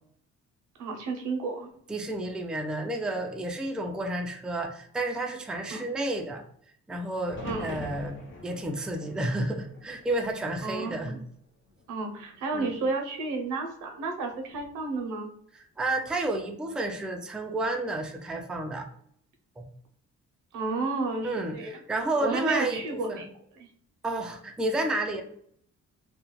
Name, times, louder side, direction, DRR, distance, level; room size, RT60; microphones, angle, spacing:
voice 1, 0.8-1.7 5.7-5.8 7.4-7.8 10.6-11.2 11.9-15.3 20.5-21.8 22.2-23.3 23.6-23.7, right 3 dB, 85° right, 3 dB, 0.6 m, -32 dB
voice 2, 1.9-6.4 6.9-11.2 12.5-12.7 15.8-18.9 19.6-19.7 21.2-23.2 24.0-25.2, right 2 dB, 5° right, 4 dB, 0.3 m, -31 dB
sound 1, 7.3-11.3 11.7-12.4 14.3-14.8, left 2 dB, 40° left, 0.7 m, -44 dB
2.3 x 2.2 x 3.0 m, 0.64 s
cardioid pair, 90°, 30 cm